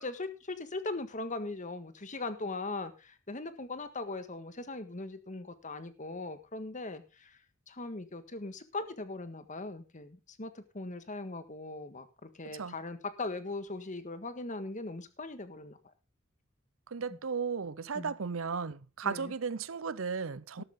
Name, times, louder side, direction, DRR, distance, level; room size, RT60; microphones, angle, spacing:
voice 1, 0.0-7.4 7.7-15.8 17.9-18.1 19.0-19.3 20.6-20.7, left 2 dB, 40° left, 1.6 m, -40 dB
voice 2, 12.4-12.8 16.9-20.6, right 5 dB, 85° right, 0.7 m, -35 dB
13.5 x 12.5 x 3.7 m
head